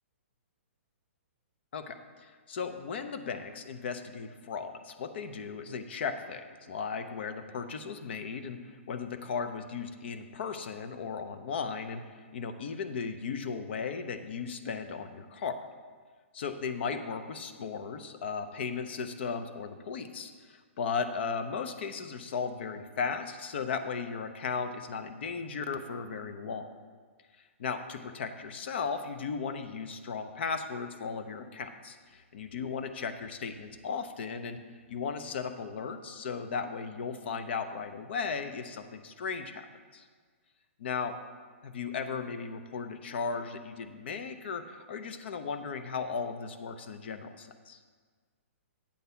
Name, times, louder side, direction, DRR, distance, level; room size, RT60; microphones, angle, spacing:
voice 1, 1.7-15.6 16.3-26.7 27.6-34.6 34.9-39.7 39.9-40.1 40.8-41.1 41.6-47.8, left 5 dB, 55° left, 9 dB, 0.7 m, -36 dB
8.5 x 4.0 x 6.8 m, 1.6 s
hypercardioid pair, 160°, 7 cm